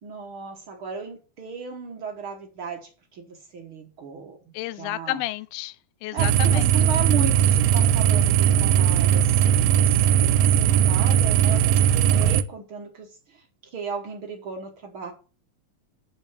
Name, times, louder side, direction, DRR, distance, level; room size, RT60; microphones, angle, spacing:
voice 1, 0.0-5.2 6.1-15.1, right 5 dB, 60° right, 1.3 m, -36 dB
voice 2, 4.5-5.8 6.0-6.7, left 17 dB, 85° left, 2.3 m, -31 dB
sound 1, 6.2-12.4, right 9 dB, 80° right, 2.4 m, -19 dB
8.8 x 5.6 x 6.7 m
omnidirectional pair, 4.2 m